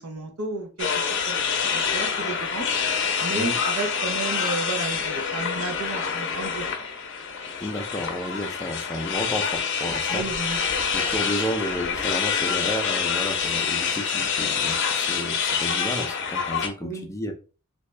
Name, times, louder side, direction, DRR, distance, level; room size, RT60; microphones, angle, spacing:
voice 1, 0.0-2.7 3.2-6.7 10.1-10.6 10.9-11.0 16.8-17.1, right 3 dB, 80° right, 4 dB, 0.8 m, -33 dB
sound 1, 0.8-16.7, left 6 dB, 55° left, 0.6 m, -26 dB
voice 2, 7.6-10.5 10.9-17.3, equal, 15° left, 5 dB, 0.4 m, -32 dB
3.3 x 2.7 x 3.2 m, 0.36 s
head